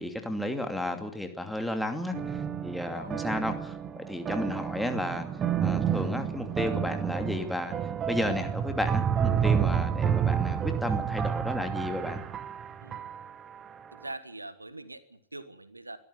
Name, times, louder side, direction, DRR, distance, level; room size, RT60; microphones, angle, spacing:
voice 1, 0.0-5.3 5.6-7.7 8.1-12.2, left 1 dB, ahead, 6 dB, 2.6 m, -33 dB
sound 1, 2.1-13.6, right 8 dB, 25° right, 1.4 m, -30 dB
voice 2, 2.9-3.6 12.8-13.0 13.9-16.0, right 2 dB, 80° right, 15 dB, 1.3 m, -43 dB
23.0 x 13.5 x 9.4 m, 0.73 s
figure-of-eight pair, 90°, 0 cm